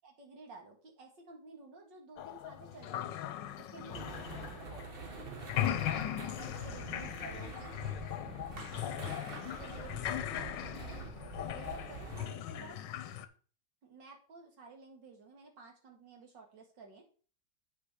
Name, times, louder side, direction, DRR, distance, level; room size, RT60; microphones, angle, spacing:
voice 1, 0.0-3.2 3.6-4.4 5.8-7.8 8.7-9.1 9.6-10.0 10.8-11.0 11.4-12.8 13.8-17.0, right 4 dB, 80° right, 2 dB, 2.6 m, -53 dB
sound 1, 2.2-5.1 5.4-13.3, left 11 dB, 80° left, 1.4 m, -39 dB
voice 2, 3.8-5.9 7.2-8.5 8.7-10.5, left 5 dB, 65° left, 8 dB, 1.8 m, -56 dB
sound 2, 3.9-12.3, right 4 dB, 35° right, 1.2 m, -46 dB
8.4 x 5.9 x 4.9 m, 0.39 s
omnidirectional pair, 1.9 m